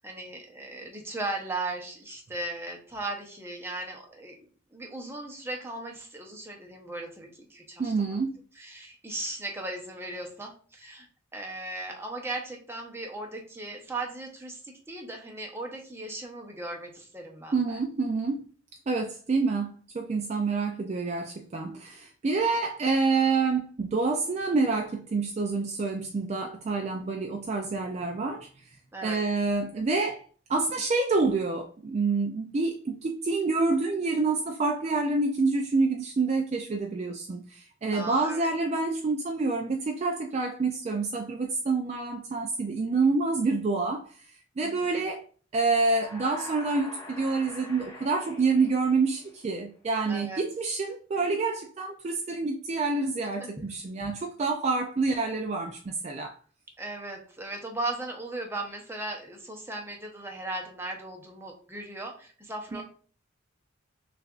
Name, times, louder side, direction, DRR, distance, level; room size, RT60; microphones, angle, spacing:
voice 1, 0.0-7.9 8.6-11.1 11.3-17.8 28.9-29.3 37.9-38.5 44.6-44.9 50.1-50.5 53.4-53.6 54.0-54.1 56.8-62.8, right 2 dB, 10° right, 0.7 m, -37 dB
voice 2, 7.8-8.4 17.5-18.5 18.9-28.7 29.0-45.2 45.5-56.4 62.7-62.8, right 3 dB, 35° right, 0.3 m, -27 dB
sound 1, 45.7-49.6, left 1 dB, 20° left, 0.9 m, -45 dB
6.3 x 2.4 x 2.4 m
head